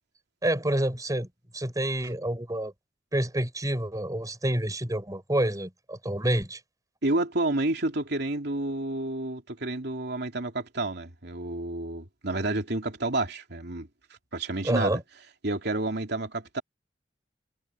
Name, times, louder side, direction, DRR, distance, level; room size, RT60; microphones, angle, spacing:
voice 1, 0.4-1.3 1.5-2.7 3.1-6.6 14.6-15.0, right 1 dB, 20° right, 5.0 m, -28 dB
voice 2, 7.0-13.9 14.3-15.0 15.4-16.6, right 2 dB, 65° right, 3.1 m, -30 dB
head